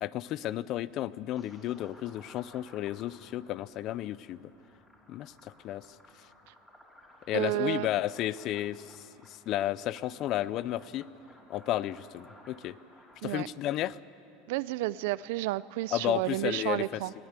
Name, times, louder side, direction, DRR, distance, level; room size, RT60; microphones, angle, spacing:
voice 1, 0.0-4.5 5.1-5.9 7.3-11.1 11.5-12.8 13.2-14.0 15.9-17.0, left 13 dB, 45° left, 19 dB, 0.4 m, -33 dB
sound 1, 1.4-13.2, left 1 dB, 10° left, 3.6 m, -57 dB
voice 2, 7.3-7.9 13.2-13.5 14.5-17.1, right 18 dB, 75° right, 19 dB, 0.4 m, -31 dB
22.0 x 14.5 x 8.2 m, 3.0 s
supercardioid pair, 145°, 0 cm